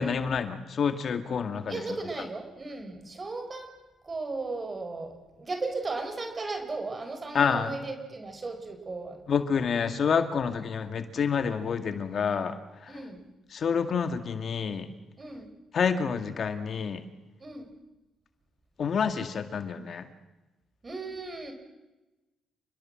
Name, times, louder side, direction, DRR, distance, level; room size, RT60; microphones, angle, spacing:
voice 1, 0.0-1.8 7.3-7.7 9.3-12.6 12.8-13.0 13.5-14.9 15.7-17.0 18.8-20.1, left 6 dB, 55° left, 8 dB, 2.0 m, -28 dB
voice 2, 1.7-3.7 4.0-9.2 10.5-10.6 12.9-13.2 15.2-15.5 17.4-17.7 20.8-21.5, right 3 dB, 30° right, 7 dB, 4.5 m, -36 dB
28.5 x 21.0 x 7.6 m, 1.1 s
cardioid pair, 90°, 0 cm